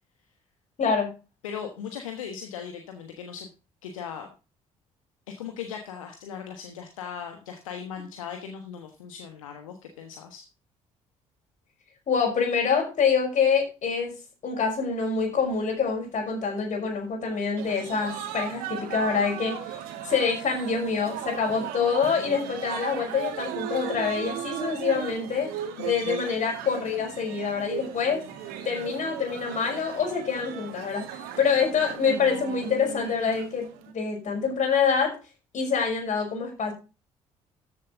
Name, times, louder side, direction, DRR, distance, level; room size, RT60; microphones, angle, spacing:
voice 1, 0.8-1.1 12.1-14.1 14.4-19.8 20.0-25.5 25.8-28.2 28.6-31.0 31.4-33.7 33.9-35.2 35.5-36.7, left 6 dB, 45° left, 1 dB, 5.7 m, -26 dB
voice 2, 1.4-3.5 3.8-4.3 5.3-10.4 25.8-26.2, left 7 dB, 75° left, 5 dB, 1.3 m, -38 dB
sound 1, 17.6-33.9, right 9 dB, 65° right, 1.9 m, -37 dB
13.5 x 7.4 x 3.9 m, 0.30 s
figure-of-eight pair, 50°, 17 cm